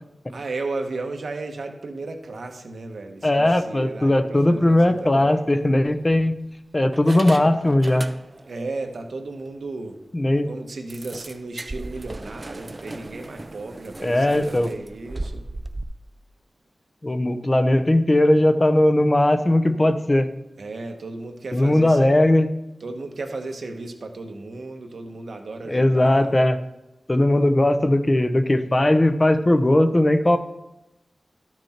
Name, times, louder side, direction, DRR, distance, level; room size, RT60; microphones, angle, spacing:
voice 1, 0.3-5.4 8.5-10.0 10.5-15.4 20.6-22.1 22.8-26.4, right 3 dB, 80° right, 4 dB, 1.2 m, -34 dB
voice 2, 3.2-6.4 6.7-8.1 10.1-10.5 14.0-14.7 17.0-20.3 21.5-22.5 25.7-26.6 27.1-30.4, left 1 dB, 30° left, 9 dB, 0.8 m, -18 dB
sound 1, 4.9-5.1 5.8-6.5 6.9-8.6 8.9-9.0 9.5-9.6 9.9-10.0 10.9-15.8, right 2 dB, 35° right, 0.5 m, -37 dB
12.0 x 6.1 x 4.4 m, 0.94 s
wide cardioid pair, 75°, 0 cm